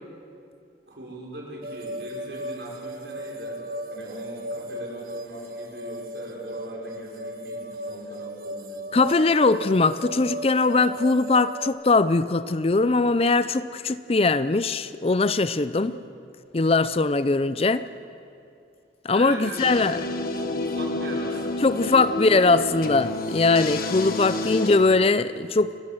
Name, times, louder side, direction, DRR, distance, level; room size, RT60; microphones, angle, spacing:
voice 1, 0.9-3.6 3.9-8.8 15.7-16.1 19.1-22.2 24.2-24.5, right 1 dB, 70° right, -2 dB, 5.8 m, -40 dB
sound 1, 1.6-11.7, right 1 dB, 50° right, 1.2 m, -36 dB
voice 2, 8.9-16.0 16.5-17.8 19.0-20.0 21.6-25.7, left 3 dB, 35° left, 15 dB, 0.5 m, -21 dB
sound 2, 19.6-24.8, left 2 dB, 55° left, 1.5 m, -29 dB
28.5 x 15.0 x 7.7 m, 2.5 s
head